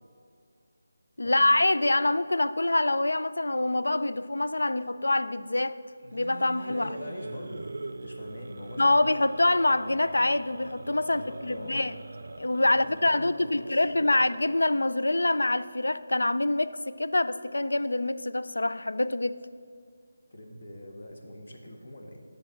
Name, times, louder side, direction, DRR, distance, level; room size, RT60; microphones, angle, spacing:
voice 1, 1.2-5.8 6.1-6.9 8.8-12.0 12.4-19.4, left 2 dB, 80° left, 0.4 m, -25 dB
sound 1, 6.0-14.8, right 3 dB, 65° right, 0.4 m, -43 dB
voice 2, 6.7-7.7 8.0-9.0 11.0-11.9 12.6-14.3 20.3-22.2, left 1 dB, 60° left, 1.4 m, -43 dB
10.0 x 4.0 x 7.1 m
figure-of-eight pair, 160°, 0 cm